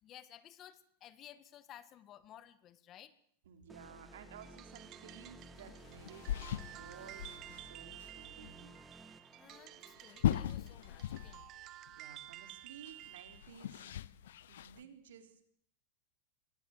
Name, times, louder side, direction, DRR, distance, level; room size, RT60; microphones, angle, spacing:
voice 1, 0.0-3.1 9.4-11.5, left 11 dB, 40° left, 13 dB, 1.9 m, -56 dB
voice 2, 3.5-8.8 11.9-14.0 14.5-15.4, right 7 dB, 80° right, 6 dB, 4.0 m, -55 dB
sound 1, 3.7-10.2, right 1 dB, 10° right, 2.4 m, -56 dB
sound 2, 4.4-13.4, right 14 dB, 45° right, 1.5 m, -53 dB
sound 3, 5.7-7.7 7.9-8.1 8.4-8.5 10.0-11.6 11.9-12.0 12.9-14.8, left 11 dB, 80° left, 0.9 m, -38 dB
24.0 x 18.0 x 8.1 m, 0.65 s
hypercardioid pair, 110°, 0 cm